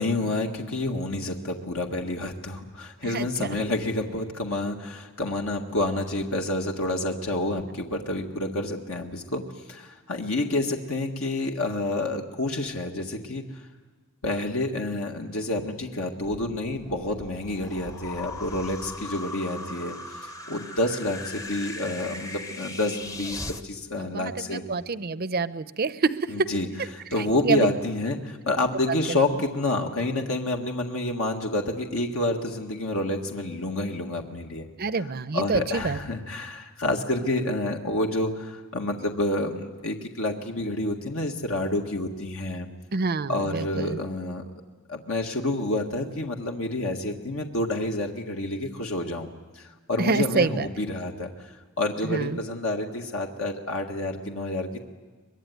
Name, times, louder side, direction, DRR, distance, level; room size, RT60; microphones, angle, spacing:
voice 1, 0.0-9.4 9.7-13.6 14.2-20.0 20.2-24.6 26.3-26.7 26.9-34.7 35.3-42.7 43.3-44.4 44.9-49.3 49.5-54.8, left 2 dB, 70° left, 2 dB, 1.8 m, -29 dB
voice 2, 3.0-3.6 24.0-26.5 27.4-27.7 34.8-36.0 42.9-44.0 50.0-50.7 52.0-52.4, right 4 dB, 45° right, 14 dB, 0.7 m, -27 dB
sound 1, 16.2-23.6, left 2 dB, 15° left, 0.9 m, -39 dB
23.5 x 22.0 x 9.4 m, 1.3 s
head